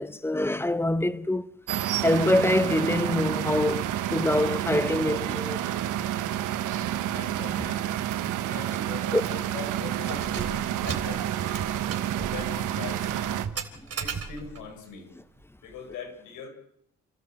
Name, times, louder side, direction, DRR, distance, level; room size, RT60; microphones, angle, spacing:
voice 1, 0.0-1.5 2.0-5.6 9.1-9.2, left 1 dB, 10° left, 1.0 m, -25 dB
sound 1, 1.7-13.5, right 12 dB, 90° right, 1.4 m, -29 dB
voice 2, 7.1-8.0 8.5-11.7 12.2-13.4 14.0-15.1 15.6-16.5, left 5 dB, 90° left, 5.7 m, -41 dB
Keys jangling, 8.1-8.3 8.6-8.7 9.2-9.5 10.0-14.7, right 6 dB, 55° right, 3.7 m, -37 dB
29.0 x 14.0 x 7.7 m
cardioid pair, 90°, 30 cm